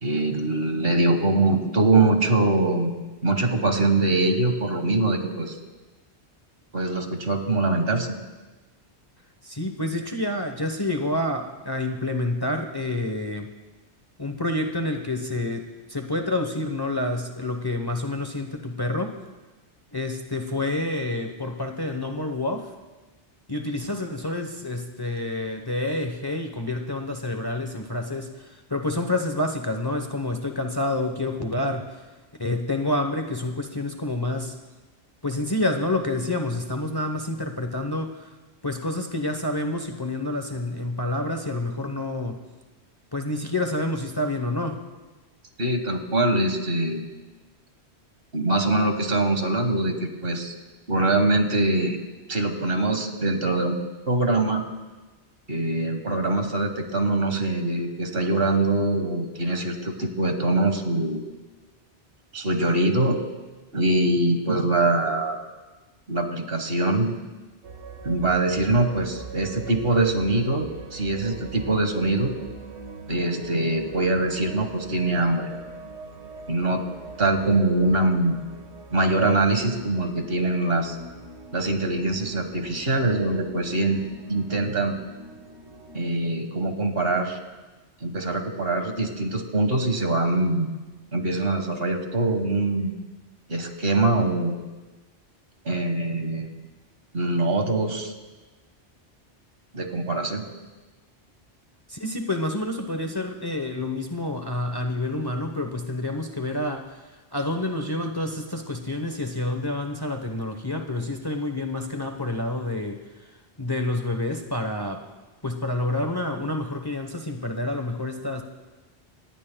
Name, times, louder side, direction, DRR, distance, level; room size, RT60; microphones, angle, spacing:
voice 1, 0.0-2.9 3.2-5.6 6.7-8.2 45.6-47.0 48.3-50.5 50.9-52.0 52.3-53.8 54.1-54.6 55.5-61.3 62.3-63.2 63.7-65.4 66.1-67.1 68.0-72.3 73.1-75.5 76.5-76.8 77.2-78.4 78.9-81.0 81.5-84.0 84.3-84.9 85.9-87.4 88.0-90.7 91.1-93.0 93.5-94.6 95.6-96.5 97.1-98.1 99.7-100.4, right 2 dB, 60° right, 5 dB, 1.8 m, -23 dB
voice 2, 9.4-13.5 14.2-19.2 19.9-22.7 23.5-32.0 32.4-34.6 35.2-38.3 38.6-42.4 43.1-44.8 101.9-107.0 107.3-113.3 113.6-115.1 115.4-118.4, left 1 dB, 20° left, 4 dB, 1.0 m, -28 dB
sound 1, 67.6-86.0, right 3 dB, 90° right, 1.6 m, -42 dB
25.5 x 19.0 x 2.3 m, 1.2 s
omnidirectional pair, 1.1 m